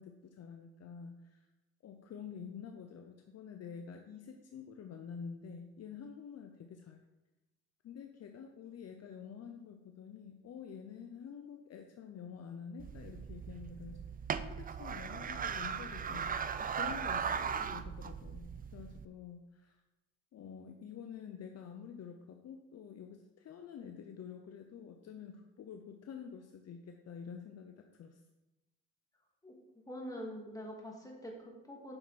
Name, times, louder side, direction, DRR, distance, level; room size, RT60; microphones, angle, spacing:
voice 1, 0.0-1.5 1.8-7.0 7.8-14.1 14.3-19.8 20.3-28.2, left 7 dB, 55° left, 4 dB, 0.7 m, -48 dB
sound 1, 12.8-19.1, right 7 dB, 30° right, 0.4 m, -38 dB
voice 2, 29.4-32.0, equal, 10° left, -1 dB, 2.2 m, -45 dB
7.7 x 6.1 x 4.2 m, 1.0 s
cardioid pair, 90°, 30 cm